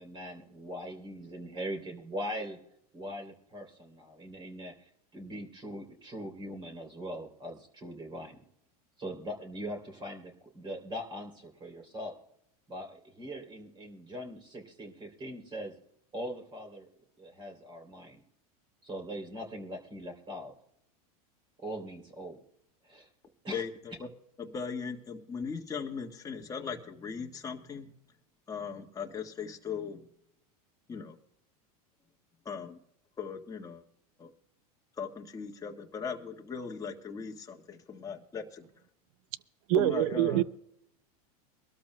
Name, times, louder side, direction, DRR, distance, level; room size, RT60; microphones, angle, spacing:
voice 1, 0.0-2.6 2.9-8.4 9.0-12.1 12.7-15.7 16.1-16.9 17.2-18.2 18.8-20.5 21.6-22.4 22.8-23.1 23.4-23.6, equal, 25° right, 3.1 m, -41 dB
voice 2, 24.4-27.9 28.5-30.1 30.9-31.2 32.4-32.8 33.2-33.8 34.2-34.3 35.0-38.6 39.7-40.4, left 6 dB, 15° left, 1.4 m, -38 dB
voice 3, 39.7-40.4, right 16 dB, 65° right, 0.6 m, -25 dB
24.5 x 12.5 x 2.2 m
supercardioid pair, 120°, 20 cm